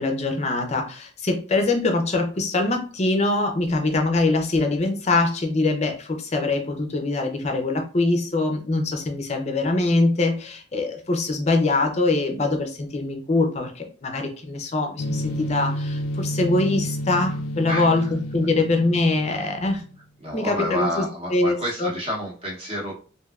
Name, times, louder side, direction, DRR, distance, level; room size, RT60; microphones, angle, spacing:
voice 1, 0.0-18.0 18.3-19.8 20.3-21.0 21.3-21.9, left 2 dB, 35° left, 4 dB, 0.5 m, -23 dB
sound 1, 15.0-19.9, equal, 85° left, 0.4 m, -30 dB
voice 2, 17.6-18.1 20.2-22.9, equal, 30° right, -4 dB, 0.8 m, -30 dB
3.2 x 2.6 x 2.4 m, 0.39 s
head